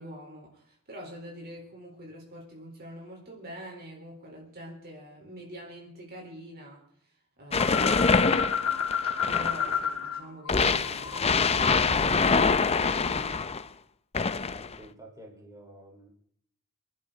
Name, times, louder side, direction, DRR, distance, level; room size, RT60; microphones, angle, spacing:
voice 1, 0.0-6.9 7.4-8.8 9.2-13.5, right 1 dB, 45° right, 4.2 m, -45 dB
sound 1, 7.5-9.8 10.5-13.6 14.1-14.8, left 4 dB, 30° left, 0.6 m, -25 dB
sound 2, 7.6-10.2 10.5-12.8, left 7 dB, 75° left, 2.0 m, -31 dB
voice 2, 14.5-16.1, right 1 dB, 15° right, 4.3 m, -50 dB
26.5 x 11.5 x 4.0 m
head